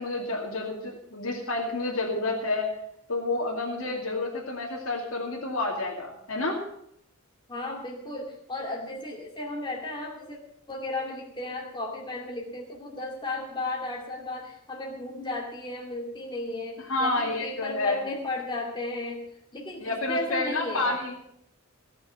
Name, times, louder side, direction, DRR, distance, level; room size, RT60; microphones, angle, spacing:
voice 1, 0.0-2.7 3.1-6.6 16.9-18.0 19.8-21.1, left 2 dB, 75° left, -3 dB, 2.5 m, -29 dB
voice 2, 7.5-10.4 10.7-19.3 19.5-21.0, left 2 dB, 20° left, -1 dB, 2.5 m, -34 dB
18.0 x 6.8 x 8.1 m, 0.74 s
head